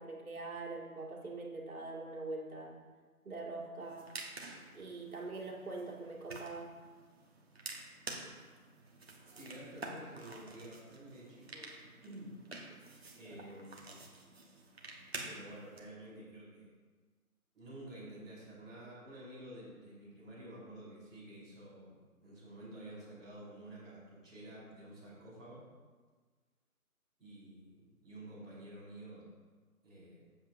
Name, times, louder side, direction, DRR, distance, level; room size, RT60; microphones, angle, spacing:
voice 1, 0.0-2.8 3.2-4.1 4.7-6.7, right 3 dB, 70° right, -2 dB, 2.2 m, -43 dB
sound 1, 3.8-15.8, right 2 dB, 40° right, 1.3 m, -49 dB
voice 2, 9.3-12.4 13.2-14.0 15.2-16.7 17.5-25.6 27.2-29.3 29.8-30.3, right 1 dB, ahead, -19 dB, 2.3 m, -51 dB
12.5 x 7.9 x 2.6 m, 1.4 s
hypercardioid pair, 175°, 45 cm